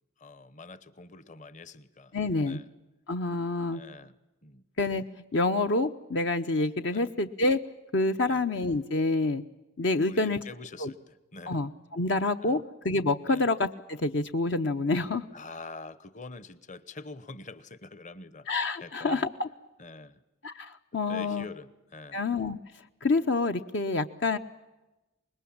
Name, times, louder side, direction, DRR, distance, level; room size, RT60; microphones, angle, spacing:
voice 1, 0.2-2.2 2.5-2.7 3.7-4.1 4.4-4.6 6.8-7.1 8.2-8.4 10.0-11.6 12.4-12.6 13.2-13.5 15.3-18.5 18.8-19.3 19.8-20.2 21.1-22.2, left 3 dB, 35° left, 16 dB, 1.0 m, -45 dB
voice 2, 2.1-2.6 3.1-3.8 4.8-5.0 5.3-7.6 7.9-9.4 9.8-10.4 10.8-10.9 11.5-15.2 18.5-19.5 20.4-21.5 22.1-22.6 23.0-24.4, left 2 dB, 60° left, 8 dB, 0.8 m, -27 dB
25.5 x 21.0 x 8.7 m, 1.0 s
head